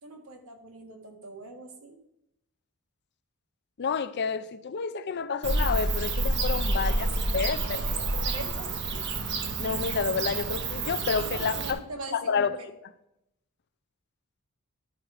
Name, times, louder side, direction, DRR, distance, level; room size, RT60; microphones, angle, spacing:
voice 1, 0.0-2.0 6.7-9.0 11.3-12.7, right 2 dB, 80° right, 1.5 m, -43 dB
voice 2, 3.8-6.9 7.3-7.8 9.6-11.8 12.1-12.6, left 5 dB, 50° left, 0.5 m, -29 dB
Bird / Cricket, 5.4-11.7, right 2 dB, 55° right, 0.9 m, -29 dB
12.0 x 4.8 x 4.8 m
head